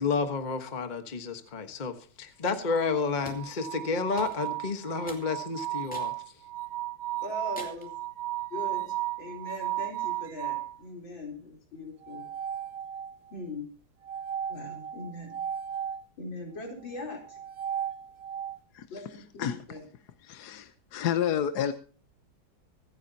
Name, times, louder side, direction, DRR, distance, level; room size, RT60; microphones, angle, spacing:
voice 1, 0.0-6.1, left 4 dB, 25° left, 7 dB, 1.2 m, -30 dB
sound 1, 2.7-10.8 12.0-13.3 14.0-16.0 17.2-18.6, right 12 dB, 55° right, 0.7 m, -35 dB
sound 2, 3.3-3.5 4.2-4.6 5.1-5.3 5.9-6.2 6.7-6.8 7.6-7.9, equal, 5° left, 2.5 m, -45 dB
voice 2, 7.2-7.9 8.5-12.3 13.3-13.7 14.5-15.4 16.2-17.4 18.9-19.8, left 2 dB, 80° left, 1 dB, 4.7 m, -40 dB
voice 3, 19.4-19.8 20.2-21.7, left 9 dB, 65° left, 10 dB, 1.3 m, -30 dB
25.0 x 9.5 x 2.8 m, 0.39 s
omnidirectional pair, 2.1 m